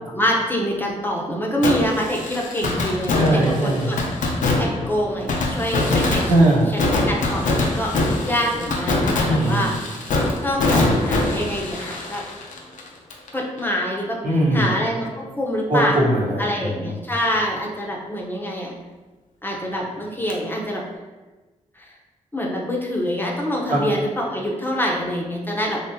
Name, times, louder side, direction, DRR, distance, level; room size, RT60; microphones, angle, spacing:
voice 1, 0.1-4.0 4.6-6.3 7.1-9.7 10.4-12.2 13.3-14.2 14.5-16.0 16.4-18.7 19.4-20.8 21.8-21.9 22.3-25.8, equal, 15° left, -2 dB, 0.7 m, -25 dB
Fireworks, 1.6-13.3 13.6-13.7 20.3-20.4, left 2 dB, 75° left, 0.6 m, -23 dB
voice 2, 3.1-3.9 6.3-6.7 9.3-9.7 14.2-14.7 15.7-16.9 23.7-23.9, right 1 dB, 75° right, -5 dB, 1.0 m, -20 dB
3.6 x 3.1 x 2.7 m, 1.2 s
cardioid pair, 60°, 14 cm